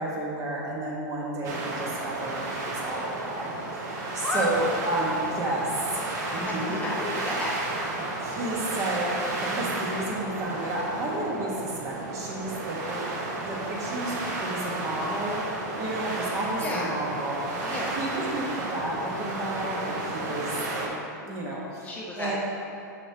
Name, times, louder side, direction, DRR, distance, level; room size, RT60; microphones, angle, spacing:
voice 1, 0.0-5.7 5.9-6.1 6.3-6.7 8.2-15.4 15.8-20.9 21.2-21.9 22.2-22.4, right 1 dB, 30° right, -3 dB, 1.4 m, -32 dB
sound 1, 1.4-20.9, right 2 dB, 65° right, 1.1 m, -33 dB
voice 2, 6.4-7.5 16.6-16.9 17.7-18.0 21.8-22.4, left 2 dB, 15° left, -4 dB, 0.7 m, -32 dB
6.9 x 6.1 x 2.9 m, 2.6 s
hypercardioid pair, 130°, 10 cm